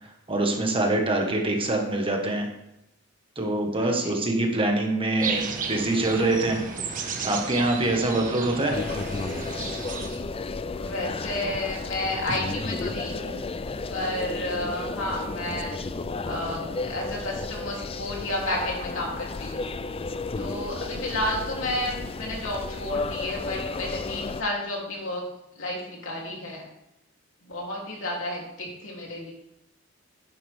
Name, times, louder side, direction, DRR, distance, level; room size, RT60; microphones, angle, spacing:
voice 1, 0.0-2.5 3.3-6.6 7.2-8.8, right 2 dB, 25° right, 2 dB, 1.6 m, -25 dB
voice 2, 3.8-4.2 8.1-8.5 10.7-13.3 13.8-15.8 16.3-19.7 20.4-25.2 25.6-26.6 27.5-29.3, left 1 dB, 75° left, -2 dB, 3.3 m, -31 dB
sound 1, 5.2-10.2, right 4 dB, 45° right, 1.4 m, -33 dB
sound 2, 8.7-24.4, left 3 dB, 30° left, 0.4 m, -33 dB
11.0 x 9.8 x 3.6 m, 0.85 s
head